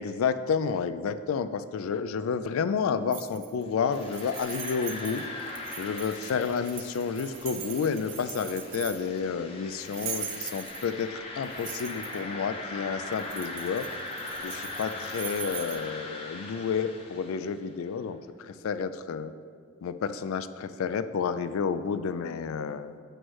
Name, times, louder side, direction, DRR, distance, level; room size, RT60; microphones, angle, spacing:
voice 1, 0.0-5.2 5.8-13.9 14.4-19.3 19.8-23.0, left 6 dB, 80° left, 12 dB, 0.3 m, -30 dB
sound 1, 3.1-3.6 3.9-9.2 9.8-11.0 11.4-12.2 13.1-15.8, right 8 dB, 55° right, 0.7 m, -40 dB
sound 2, 3.7-17.7, left 2 dB, 25° left, 0.6 m, -40 dB
7.8 x 3.1 x 6.2 m, 2.2 s
head